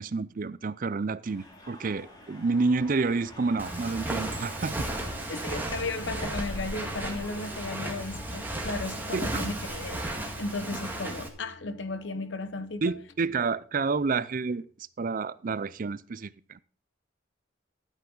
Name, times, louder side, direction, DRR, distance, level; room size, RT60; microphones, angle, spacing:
voice 1, 0.0-4.9 9.1-9.5 12.8-14.6 15.0-16.6, right 4 dB, 45° right, 0.5 m, -29 dB
sound 1, 1.2-10.6, left 1 dB, 20° left, 2.5 m, -47 dB
Walk footsteps, 3.6-11.3, right 1 dB, 10° right, 1.8 m, -34 dB
voice 2, 5.3-12.9, left 3 dB, 70° left, 0.9 m, -35 dB
sound 2, 9.6-14.9, left 2 dB, 50° left, 4.1 m, -56 dB
13.0 x 8.5 x 3.9 m
head